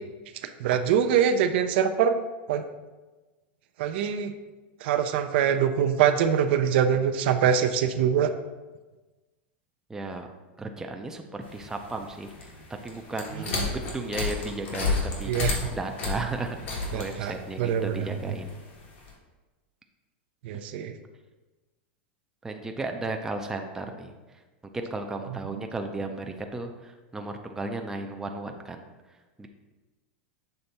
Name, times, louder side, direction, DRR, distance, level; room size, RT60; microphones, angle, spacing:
voice 1, 0.6-2.2 2.5-2.6 3.8-4.3 4.8-8.3 15.3-15.7 16.9-17.3 17.6-18.0 20.4-21.0, right 8 dB, 65° right, 8 dB, 0.4 m, -24 dB
voice 2, 9.9-10.3 10.6-12.5 12.8-18.5 22.4-24.1 24.7-28.8 29.4-29.5, right 2 dB, 10° right, 4 dB, 0.4 m, -35 dB
sound 1, 11.4-19.1, left 3 dB, 80° left, 1.7 m, -33 dB
6.7 x 3.4 x 4.1 m, 1.2 s
supercardioid pair, 135°, 6 cm